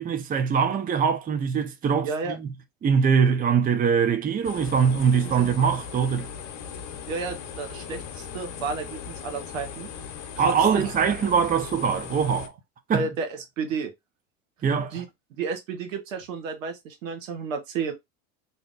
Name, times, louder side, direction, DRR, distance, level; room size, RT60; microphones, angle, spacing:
voice 1, 0.0-2.1 2.4-2.5 2.8-6.3 10.4-12.5 12.9-13.1 14.6-15.0, right 6 dB, 20° right, 0.6 m, -22 dB
voice 2, 2.0-2.4 5.2-5.5 7.1-9.9 10.4-10.9 12.9-13.3 13.6-13.9 14.9-15.0 15.4-17.9, right 5 dB, 80° right, 1.1 m, -31 dB
sound 1, 4.4-12.5, left 7 dB, 55° left, 0.9 m, -38 dB
2.7 x 2.1 x 3.8 m
hypercardioid pair, 90°, 38 cm